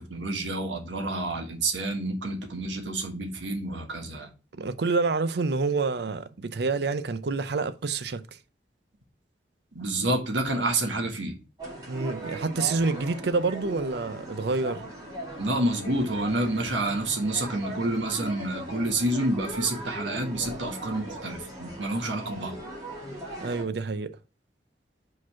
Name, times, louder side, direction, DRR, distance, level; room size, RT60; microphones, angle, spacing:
voice 1, 0.0-4.3 9.7-11.3 15.4-22.6, right 2 dB, 90° right, 1.5 m, -28 dB
voice 2, 4.5-8.4 10.0-10.1 11.9-14.8 23.4-24.2, right 4 dB, 65° right, 0.5 m, -28 dB
sound 1, 11.6-23.6, right 1 dB, 20° right, 2.2 m, -39 dB
5.0 x 4.0 x 5.7 m
head